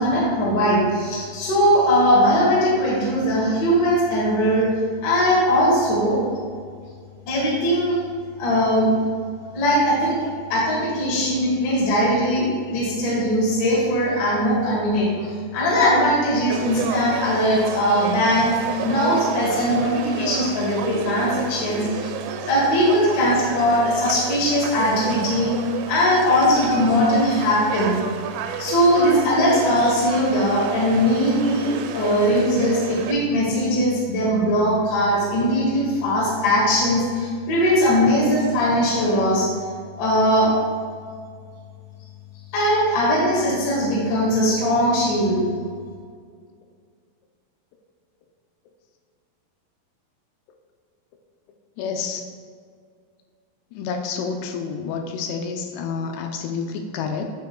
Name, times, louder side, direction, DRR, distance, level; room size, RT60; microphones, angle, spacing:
voice 1, 0.0-4.7 5.0-6.2 7.3-8.0 8.4-8.9 9.5-10.2 10.5-22.1 22.5-25.5 25.9-28.0 28.6-39.5 40.0-40.5 42.5-45.4, equal, 60° left, -6 dB, 2.9 m, -20 dB
Conversation / Crowd, 16.5-33.1, right 7 dB, 90° right, 2.8 m, -32 dB
voice 2, 51.8-52.2 53.7-57.3, left 5 dB, 85° left, 4 dB, 2.6 m, -29 dB
9.1 x 7.5 x 2.2 m, 2.1 s
omnidirectional pair, 4.9 m